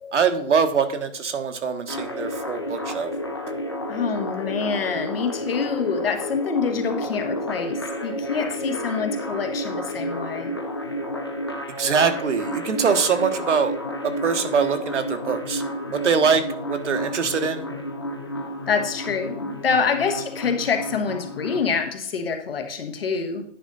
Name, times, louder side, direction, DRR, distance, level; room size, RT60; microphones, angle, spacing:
voice 1, 0.1-3.1 11.8-13.7 14.0-15.6 15.9-17.7, right 6 dB, 70° right, 7 dB, 1.3 m, -23 dB
sound 1, 1.9-21.6, equal, 20° left, 0.5 m, -31 dB
voice 2, 3.9-10.5 18.7-23.4, left 5 dB, 50° left, 6 dB, 1.3 m, -26 dB
10.0 x 5.3 x 4.0 m, 0.66 s
hypercardioid pair, 170°, 37 cm